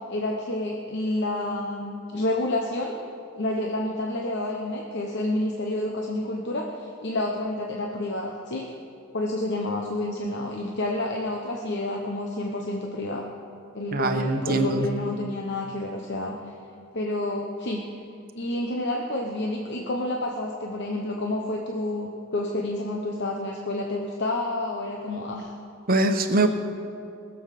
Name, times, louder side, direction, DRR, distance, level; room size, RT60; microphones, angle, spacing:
voice 1, 0.1-3.0 3.3-8.7 9.1-13.3 13.7-16.4 16.9-17.9 18.4-25.5, left 1 dB, 55° left, 0 dB, 1.0 m, -29 dB
voice 2, 13.9-14.9 25.9-26.5, right 2 dB, 45° right, 6 dB, 1.0 m, -22 dB
20.0 x 7.2 x 6.7 m, 2.6 s
head